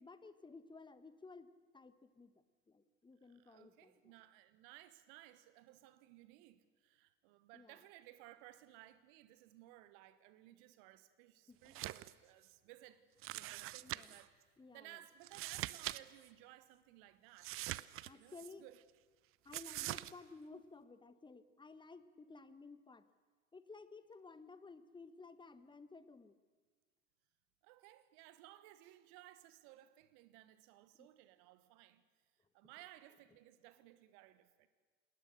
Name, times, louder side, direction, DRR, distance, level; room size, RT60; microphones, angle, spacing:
voice 1, 0.0-2.3 2.7-4.1 7.5-7.9 11.5-11.9 13.8-14.2 14.6-15.1 18.0-18.7 19.4-23.0 23.5-26.4 31.0-31.1 32.6-32.9, left 3 dB, 15° left, 1.4 m, -56 dB
voice 2, 3.2-13.0 13.3-14.3 14.7-18.8 27.6-32.0 32.5-34.7, right 15 dB, 55° right, 1.5 m, -60 dB
sound 1, 11.6-12.1 12.4-12.5 13.2-14.2 15.2-16.0 16.2-16.3 17.4-18.5 19.5-20.1, right 17 dB, 40° right, 0.7 m, -43 dB
28.5 x 20.0 x 6.7 m
figure-of-eight pair, 70°, 34 cm